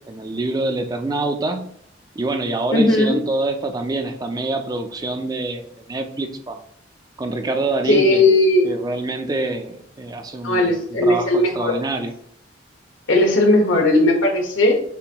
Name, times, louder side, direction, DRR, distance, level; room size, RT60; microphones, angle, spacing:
voice 1, 0.1-1.7 2.2-6.6 7.2-8.3 8.6-12.1, right 2 dB, 20° right, 6 dB, 0.4 m, -26 dB
voice 2, 2.7-3.2 7.9-8.7 10.4-11.7 13.1-14.8, left 2 dB, 80° left, 1 dB, 1.3 m, -17 dB
6.8 x 2.6 x 2.9 m, 0.64 s
head